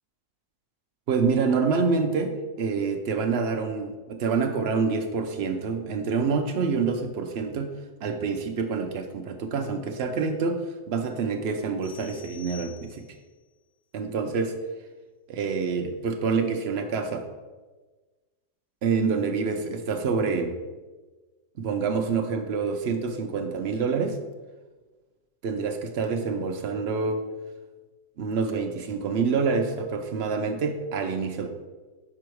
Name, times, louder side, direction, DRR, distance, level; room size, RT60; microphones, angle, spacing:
voice 1, 1.1-7.7 8.0-13.0 13.9-14.6 15.3-17.2 18.8-20.6 21.6-24.2 25.4-27.2 28.2-31.5, right 5 dB, 70° right, 5 dB, 0.6 m, -27 dB
sound 1, 11.8-13.3, left 8 dB, 35° left, 0.7 m, -48 dB
6.0 x 4.8 x 4.6 m, 1.3 s
omnidirectional pair, 1.7 m